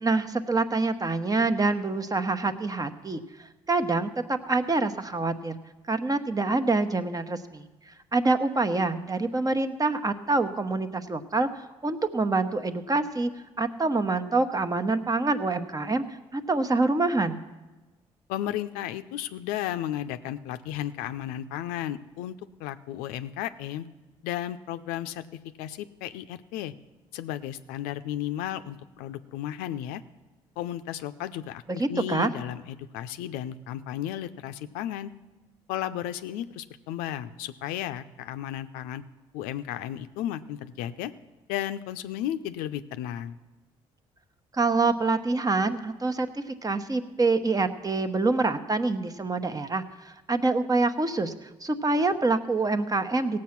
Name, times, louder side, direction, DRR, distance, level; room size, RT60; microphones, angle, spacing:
voice 1, 0.0-5.6 5.9-7.7 8.1-11.5 11.8-13.3 13.6-16.0 16.3-17.4 31.7-32.3 44.5-51.3 51.6-53.4, right 3 dB, 25° right, 8 dB, 1.0 m, -26 dB
voice 2, 18.3-23.9 24.2-25.3 25.6-26.7 27.1-30.0 30.6-35.1 35.7-39.0 39.3-41.1 41.5-43.4, left 12 dB, 85° left, 11 dB, 0.5 m, -34 dB
17.0 x 7.7 x 5.9 m, 1.2 s
supercardioid pair, 55°, 14 cm